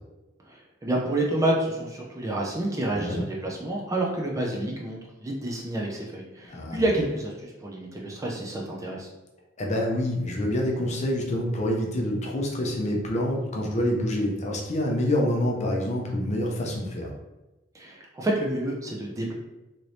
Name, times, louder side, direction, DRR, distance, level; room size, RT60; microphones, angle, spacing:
voice 1, 0.5-9.1 17.7-19.3, right 1 dB, 15° right, -2 dB, 0.4 m, -29 dB
voice 2, 6.5-6.8 9.6-17.1, left 1 dB, 35° left, 0 dB, 0.6 m, -27 dB
3.2 x 3.0 x 2.6 m, 1.0 s
head